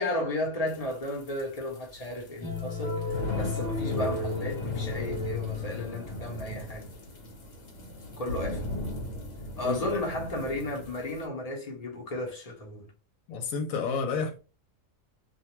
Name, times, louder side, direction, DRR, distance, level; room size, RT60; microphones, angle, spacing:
voice 1, 0.0-6.9 8.2-8.7 9.6-12.9, left 1 dB, 35° left, 0.7 m, -34 dB
sound 1, 0.7-11.2, left 1 dB, 60° left, 1.2 m, -38 dB
sound 2, 2.4-6.5, left 4 dB, 5° left, 0.4 m, -34 dB
voice 2, 9.6-10.0 13.3-14.4, left 5 dB, 80° left, 1.0 m, -30 dB
2.5 x 2.2 x 3.0 m
omnidirectional pair, 1.4 m